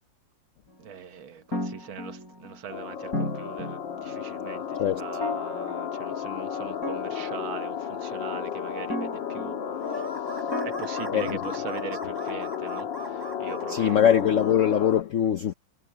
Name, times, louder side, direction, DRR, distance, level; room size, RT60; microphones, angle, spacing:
voice 1, 0.8-9.6 9.9-10.1 10.6-14.0, right 8 dB, 80° right, 2.0 m, -41 dB
sound 1, 1.5-2.7 3.1-4.3 5.2-6.4 6.8-8.2 8.9-10.1 10.5-11.9, left 1 dB, 45° left, 5.1 m, -36 dB
sound 2, 2.7-15.0, left 8 dB, 70° left, 2.1 m, -33 dB
sound 3, 9.8-14.5, right 2 dB, 25° right, 0.6 m, -41 dB
voice 2, 11.1-11.4 13.7-15.5, left 9 dB, 85° left, 0.6 m, -22 dB
omnidirectional pair, 2.2 m